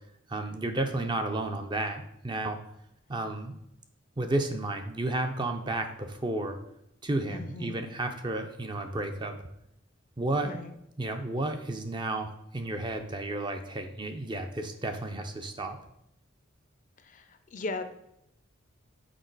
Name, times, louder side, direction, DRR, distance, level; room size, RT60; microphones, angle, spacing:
voice 1, 0.3-2.6 3.1-3.5 4.2-6.6 7.0-9.4 10.2-10.5 11.0-15.8, right 2 dB, 20° right, 6 dB, 0.5 m, -32 dB
voice 2, 7.3-7.8 10.4-10.7 17.0-17.9, left 2 dB, 40° left, 8 dB, 0.5 m, -38 dB
6.3 x 4.6 x 3.9 m, 0.79 s
head